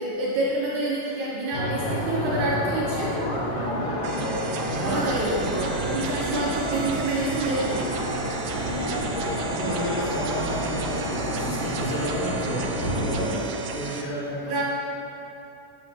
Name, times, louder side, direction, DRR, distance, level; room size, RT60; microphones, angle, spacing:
voice 1, 0.0-3.2 4.8-8.1 14.5-14.6, right 2 dB, 70° right, -5 dB, 2.1 m, -27 dB
sound 1, 1.5-13.3, equal, 65° left, 2.0 m, -29 dB
voice 2, 3.5-4.0 4.7-5.0 8.6-9.0 9.5-14.6, equal, 85° left, -5 dB, 3.1 m, -32 dB
sound 2, 4.0-14.0, right 5 dB, 90° right, 1.6 m, -35 dB
sound 3, 4.6-12.7, right 2 dB, 25° right, 1.1 m, -38 dB
8.1 x 7.4 x 3.2 m, 2.8 s
omnidirectional pair, 3.9 m